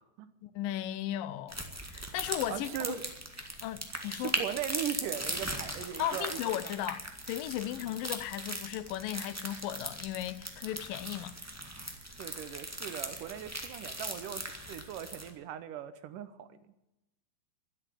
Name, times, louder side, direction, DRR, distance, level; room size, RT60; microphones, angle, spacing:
voice 1, 0.4-1.6 1.9-2.7 3.6-4.3 6.0-11.3, left 13 dB, 85° left, 2.4 m, -36 dB
sound 1, 1.5-15.3, right 1 dB, 10° right, 0.6 m, -39 dB
voice 2, 2.5-3.1 4.2-6.7 7.8-7.9 12.2-16.6, right 10 dB, 75° right, 2.4 m, -39 dB
12.5 x 11.0 x 10.0 m
omnidirectional pair, 4.0 m